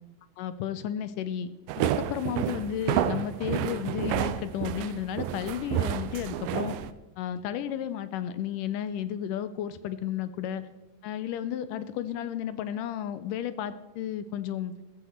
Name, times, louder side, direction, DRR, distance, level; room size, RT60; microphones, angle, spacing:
voice 1, 0.4-6.8 7.2-10.7 11.0-14.7, left 10 dB, 85° left, 13 dB, 2.3 m, -33 dB
sound 1, 1.7-6.9, right 12 dB, 80° right, 2.3 m, -30 dB
15.0 x 14.5 x 4.5 m, 1.0 s
omnidirectional pair, 3.9 m